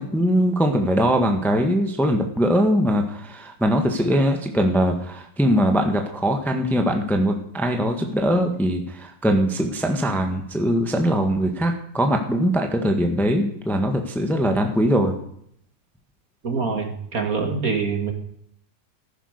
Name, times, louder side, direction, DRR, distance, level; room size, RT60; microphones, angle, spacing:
voice 1, 0.0-15.1, equal, ahead, 4 dB, 1.4 m, -21 dB
voice 2, 16.4-18.1, right 5 dB, 50° right, 4 dB, 2.8 m, -25 dB
15.0 x 10.5 x 6.7 m, 0.68 s
omnidirectional pair, 2.0 m